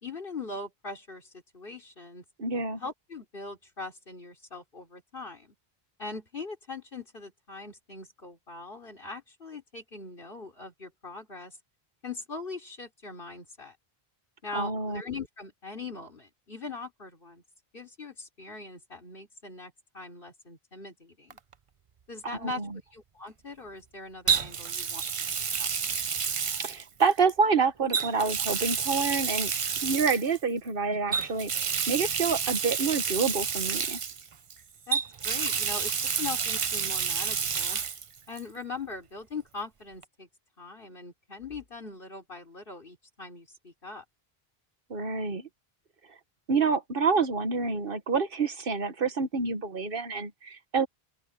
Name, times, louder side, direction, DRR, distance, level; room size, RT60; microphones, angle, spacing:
voice 1, 0.0-2.2 2.8-5.5 6.0-11.6 12.0-13.8 14.4-17.4 17.7-21.4 22.1-22.6 22.9-25.1 25.6-25.7 30.9-31.2 34.9-35.9 36.2-37.8 38.3-40.3 40.6-44.0, left 3 dB, 60° left, 3.8 m, -41 dB
voice 2, 2.4-2.8 14.5-15.0 22.2-22.8 26.6-29.5 29.8-34.0 44.9-45.5 46.5-50.9, right 4 dB, 65° right, 1.6 m, -28 dB
Water tap faucet, 21.3-21.5 24.3-27.3 27.9-30.4 31.1-34.5 34.9-38.1 38.4-38.5 40.0-40.1, right 6 dB, 40° right, 0.6 m, -29 dB
open air
omnidirectional pair, 1.0 m